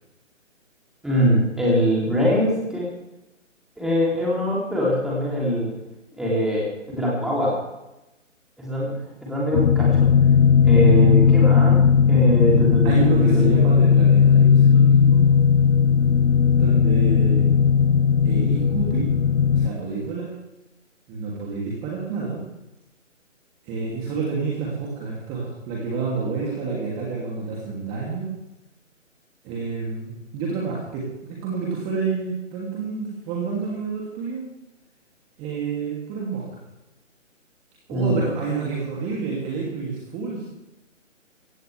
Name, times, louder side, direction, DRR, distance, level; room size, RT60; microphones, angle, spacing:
voice 1, 1.0-2.8 3.8-5.7 6.2-6.6 6.9-7.5 8.6-10.1 10.6-11.8 12.1-13.6 37.9-38.2, equal, ahead, -6 dB, 3.3 m, -22 dB
sound 1, 9.5-19.7, left 7 dB, 70° left, 0.7 m, -17 dB
voice 2, 12.8-15.4 16.6-17.5 18.2-19.1 19.5-20.3 21.1-22.4 23.6-28.3 29.4-34.4 35.4-36.6 37.9-40.5, right 4 dB, 15° right, -4 dB, 2.9 m, -28 dB
17.5 x 16.0 x 3.5 m, 0.95 s
figure-of-eight pair, 150°, 39 cm